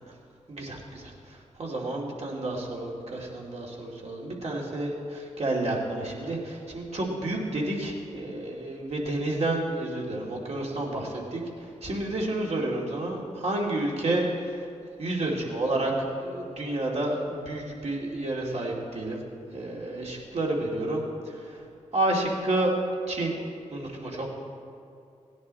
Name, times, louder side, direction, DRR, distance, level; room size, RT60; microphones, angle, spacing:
voice 1, 0.5-1.1 1.6-11.4 11.8-14.5 15.0-15.9 16.2-19.2 19.5-21.0 21.9-22.7 23.1-23.3 23.7-24.3, right 2 dB, 55° right, -2 dB, 2.5 m, -30 dB
17.0 x 10.0 x 4.2 m, 2.4 s
cardioid pair, 55°, 13 cm